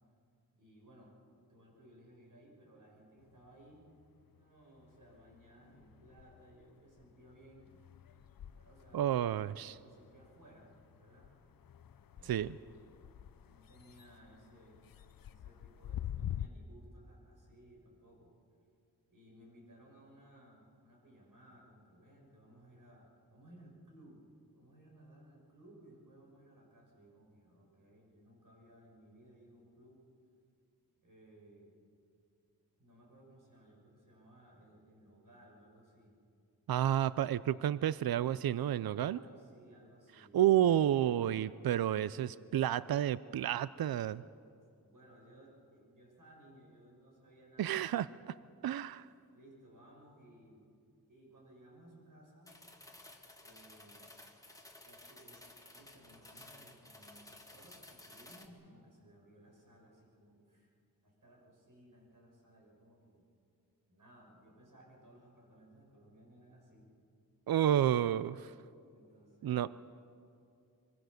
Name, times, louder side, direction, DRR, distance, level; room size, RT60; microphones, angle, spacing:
voice 1, 0.6-3.8 4.3-7.8 8.5-9.1 9.5-11.3 12.1-12.5 13.5-14.9 15.3-18.4 19.1-24.3 24.5-30.0 31.0-31.7 32.8-36.2 39.0-40.4 44.8-48.4 49.2-50.7 51.1-52.5 53.4-54.1 54.8-60.7 61.0-63.2 63.9-66.9 68.9-69.6, right 1 dB, 60° right, -1 dB, 6.6 m, -60 dB
sound 1, 3.2-4.4 4.8-16.5, left 11 dB, 70° left, 0.6 m, -48 dB
voice 2, 8.9-9.8 12.3-12.6 36.7-39.2 40.3-44.2 47.6-48.1 48.6-49.1 67.5-68.5 69.4-69.7, right 11 dB, 80° right, 17 dB, 0.5 m, -30 dB
sound 2, 52.5-58.5, left 1 dB, 10° left, 2.0 m, -55 dB
24.5 x 23.5 x 6.6 m, 2.4 s
wide cardioid pair, 140°, 36 cm